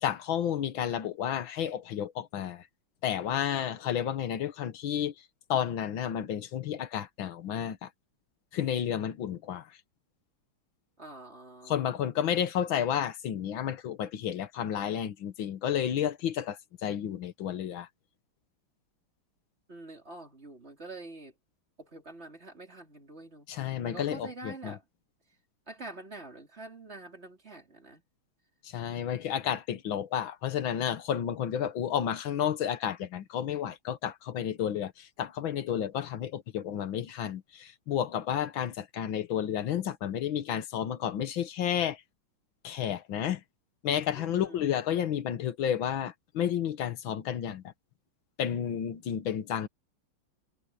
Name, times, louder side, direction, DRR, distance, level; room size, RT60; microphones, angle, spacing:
voice 1, 0.0-2.7 3.0-5.1 5.5-7.9 8.5-9.7 11.7-17.9 23.5-24.8 28.6-42.0 42.6-43.4 43.8-47.7 48.4-49.7, left 9 dB, 70° left, 1.9 m, -31 dB
voice 2, 11.0-12.2 19.7-21.3 21.8-24.8 25.7-28.0 29.4-29.6 44.1-44.7, right 2 dB, 30° right, 4.1 m, -46 dB
omnidirectional pair, 2.3 m